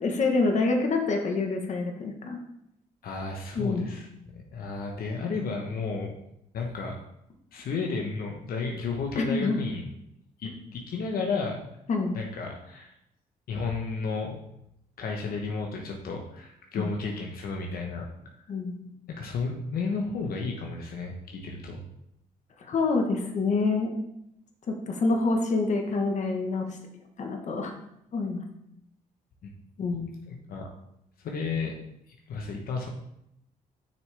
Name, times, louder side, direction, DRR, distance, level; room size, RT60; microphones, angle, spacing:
voice 1, 0.0-2.4 3.5-3.9 9.1-9.6 11.9-12.1 16.7-16.9 18.5-18.8 22.7-23.9 24.7-26.8 27.2-27.7 28.1-28.4 29.8-30.1, left 3 dB, 50° left, 3 dB, 1.3 m, -26 dB
voice 2, 3.0-4.1 4.3-6.1 6.5-7.0 7.5-9.8 10.4-11.6 12.1-12.9 13.5-14.4 15.0-18.1 18.4-18.5 19.1-21.8 29.4-29.5 30.3-30.7 31.2-31.7 32.1-32.9, left 4 dB, 70° left, 1 dB, 1.0 m, -32 dB
7.2 x 6.2 x 3.4 m, 0.79 s
cardioid pair, 120°, 16 cm